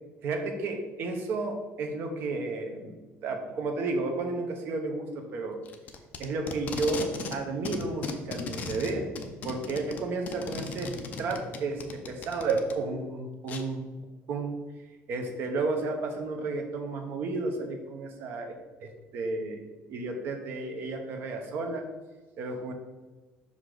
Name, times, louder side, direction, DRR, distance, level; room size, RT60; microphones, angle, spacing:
voice 1, 0.2-5.6 6.2-9.1 9.4-13.9 14.3-14.6 15.1-19.6 19.9-21.9 22.4-22.7, right 3 dB, 50° right, 4 dB, 0.9 m, -32 dB
Packing tape duct tape, 5.7-7.4 7.7-12.7 13.5-13.6, left 5 dB, 35° left, 0.5 m, -37 dB
5.6 x 4.9 x 3.8 m, 1.2 s
cardioid pair, 180°, 5 cm